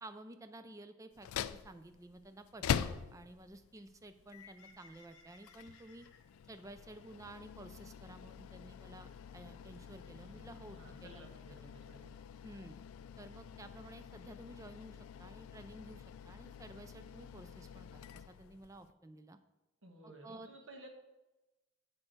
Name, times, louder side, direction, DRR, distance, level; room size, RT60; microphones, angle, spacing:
voice 1, 0.0-6.1 6.5-11.1 11.6-11.7 12.4-12.8 13.2-19.4 20.0-20.5, right 1 dB, 15° right, 10 dB, 0.4 m, -53 dB
sound 1, 1.1-18.9, left 8 dB, 90° left, 0.3 m, -45 dB
Bird, 4.1-11.4, left 3 dB, 65° left, 1.1 m, -66 dB
voice 2, 10.2-12.1 19.8-20.9, right 1 dB, 70° right, 2 dB, 1.4 m, -55 dB
7.5 x 6.5 x 4.6 m, 1.1 s
head